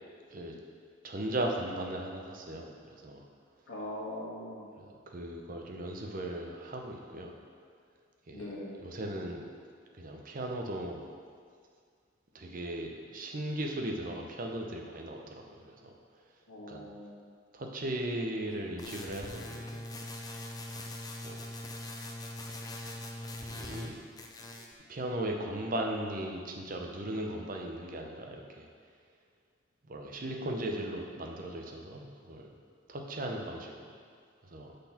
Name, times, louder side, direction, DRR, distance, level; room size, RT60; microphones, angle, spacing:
voice 1, 1.0-3.2 4.8-7.4 8.3-8.5 8.8-9.4 10.0-11.0 12.3-15.9 16.7-16.9 17.5-19.9 21.2-21.5 23.3-24.0 24.9-28.7 29.9-32.5 32.9-33.7 34.4-34.8, right 1 dB, 40° right, 2 dB, 0.7 m, -37 dB
voice 2, 3.7-4.7 8.3-8.8 16.5-17.2 18.6-18.7, left 1 dB, 80° left, -7 dB, 1.6 m, -41 dB
sound 1, 18.8-23.9 24.2-24.7, left 1 dB, 20° left, 0.4 m, -42 dB
6.5 x 4.1 x 5.8 m, 2.1 s
head